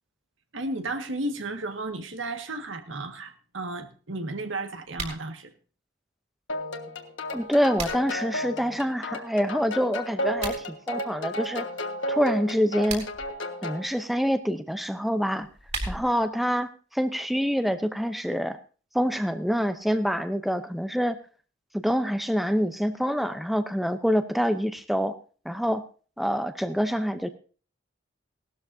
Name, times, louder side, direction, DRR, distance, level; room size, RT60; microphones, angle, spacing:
voice 1, 0.5-5.5, right 2 dB, 75° right, 6 dB, 1.7 m, -33 dB
sound 1, 4.9-5.2 7.3-8.2 10.3-10.6 12.7-13.3 15.3-16.3, right 3 dB, 40° right, 3.8 m, -36 dB
sound 2, 6.5-13.9, left 1 dB, 75° left, 1.5 m, -33 dB
voice 2, 7.3-11.7 12.1-13.1 13.6-15.5 15.9-18.6 18.9-21.2 21.7-25.1 25.4-25.8 26.2-27.3, equal, ahead, 9 dB, 0.7 m, -26 dB
18.0 x 13.0 x 2.7 m, 0.38 s
head